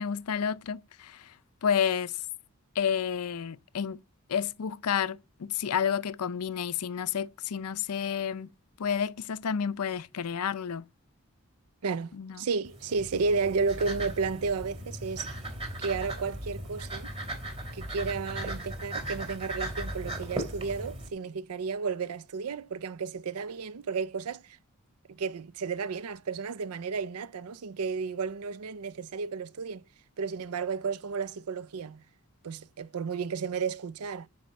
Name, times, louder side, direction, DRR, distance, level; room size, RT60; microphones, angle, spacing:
voice 1, 0.0-1.3 1.6-2.2 2.8-4.0 4.3-8.5 8.8-10.9 12.1-12.4, left 7 dB, 85° left, 0.5 m, -30 dB
voice 2, 11.8-15.3 15.8-17.1 17.7-24.6 25.1-29.8 30.2-32.0 32.4-34.3, right 5 dB, 80° right, 0.5 m, -32 dB
sound 1, 12.6-21.1, right 1 dB, 25° right, 2.6 m, -37 dB
9.4 x 5.0 x 7.7 m
head